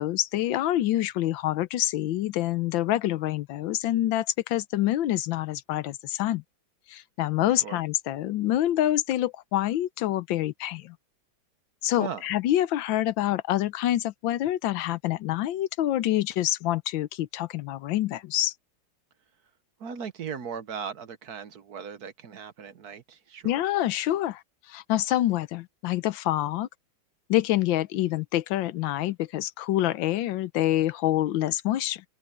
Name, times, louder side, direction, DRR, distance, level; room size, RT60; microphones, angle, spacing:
voice 1, 0.0-6.4 6.9-10.9 11.8-18.5 23.4-24.4 24.7-26.7 27.3-32.0, left 13 dB, 85° left, 1.5 m, -26 dB
voice 2, 19.8-23.6, right 7 dB, 60° right, 1.4 m, -38 dB
open air
omnidirectional pair, 2.0 m